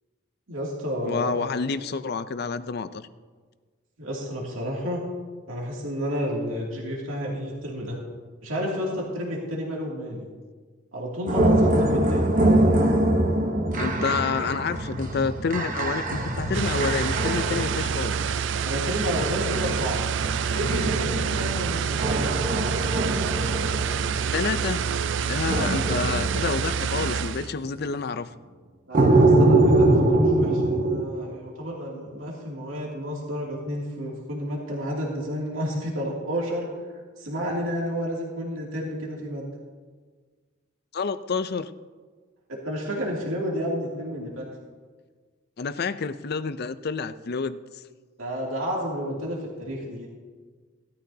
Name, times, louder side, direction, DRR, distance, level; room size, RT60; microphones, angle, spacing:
voice 1, 0.5-1.5 4.0-5.0 5.5-8.0 8.4-10.3 10.9-12.3 18.6-20.0 20.5-22.3 28.9-36.7 37.2-39.5 42.5-44.4 48.2-50.1, equal, 90° right, -3 dB, 2.6 m, -31 dB
voice 2, 1.0-3.1 13.8-18.4 24.3-28.3 40.9-41.7 45.6-47.6, left 4 dB, 50° left, 13 dB, 0.5 m, -29 dB
sound 1, 11.3-18.4 19.0-24.6 25.5-27.1 28.9-31.0, right 1 dB, 40° right, 1.1 m, -23 dB
sound 2, 16.5-27.5, right 7 dB, 60° right, 0.4 m, -27 dB
17.5 x 13.0 x 2.8 m, 1.5 s
head